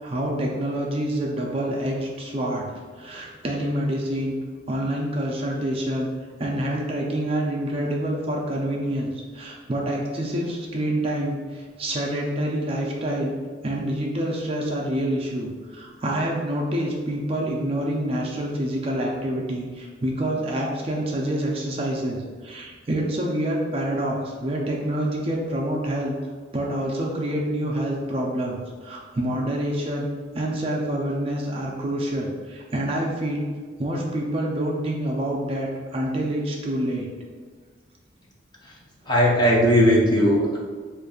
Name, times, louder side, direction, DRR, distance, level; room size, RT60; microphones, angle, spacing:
voice 1, 0.0-2.7 3.0-4.4 4.7-6.1 6.4-13.3 13.6-26.1 26.5-30.1 30.3-33.5 33.8-37.1, right 1 dB, 30° right, -2 dB, 0.4 m, -27 dB
voice 2, 39.1-40.6, equal, 20° left, -3 dB, 0.5 m, -18 dB
5.1 x 2.5 x 2.3 m, 1.5 s
head